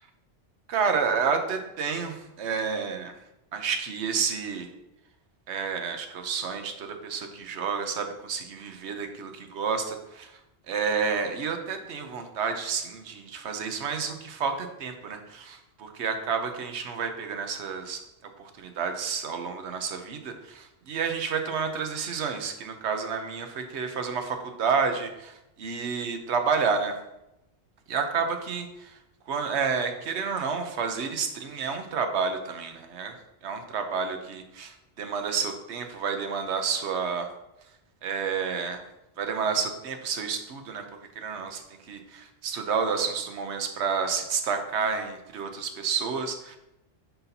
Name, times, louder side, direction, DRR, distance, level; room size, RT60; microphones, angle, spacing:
voice 1, 0.7-3.1 3.5-4.7 5.5-10.4 10.7-18.0 18.4-27.0 27.9-29.0 29.3-33.1 33.4-37.3 38.0-38.8 39.2-40.8 41.2-46.6, right 5 dB, 80° right, 6 dB, 1.0 m, -30 dB
9.7 x 4.1 x 2.7 m, 0.90 s
omnidirectional pair, 1.1 m